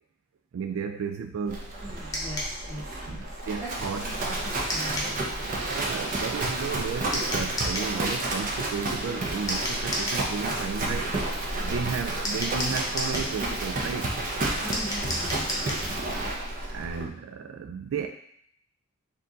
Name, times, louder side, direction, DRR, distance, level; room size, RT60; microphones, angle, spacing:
voice 1, 0.5-1.7 3.1-4.1 5.7-14.1 16.7-18.1, right 6 dB, 75° right, 5 dB, 0.3 m, -33 dB
Livestock farm animals working animals, 1.5-17.0, right 2 dB, 40° right, 0.7 m, -31 dB
voice 2, 1.8-3.3 3.6-5.9 14.6-15.8, right 1 dB, 15° right, -6 dB, 1.1 m, -40 dB
sound 1, 2.1-2.5 4.7-5.1 7.1-7.9 9.5-10.2 12.2-13.3 14.7-15.9, left 1 dB, 15° left, 0.8 m, -31 dB
4.4 x 2.5 x 3.8 m, 0.68 s
head